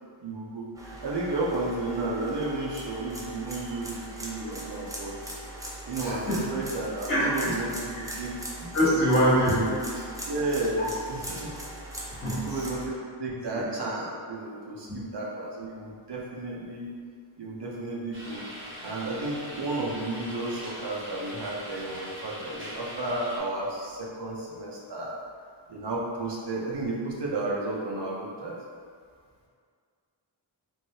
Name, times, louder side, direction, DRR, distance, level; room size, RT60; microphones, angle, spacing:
voice 1, 0.2-5.4 5.9-8.4 9.2-9.7 10.3-11.7 12.4-16.9 17.4-18.5 18.8-25.2 25.7-28.6, right 2 dB, 60° right, -4 dB, 0.7 m, -32 dB
sound 1, 0.7-12.9, right 1 dB, 10° right, 0.5 m, -40 dB
voice 2, 6.0-6.4 7.1-7.5 8.0-8.1 8.7-9.8 12.1-12.6 13.5-13.7 14.9-15.0, equal, 25° left, -9 dB, 1.1 m, -24 dB
sound 2, 18.1-23.4, equal, 25° right, 0.9 m, -41 dB
3.1 x 2.5 x 2.8 m, 2.1 s
wide cardioid pair, 85°, 47 cm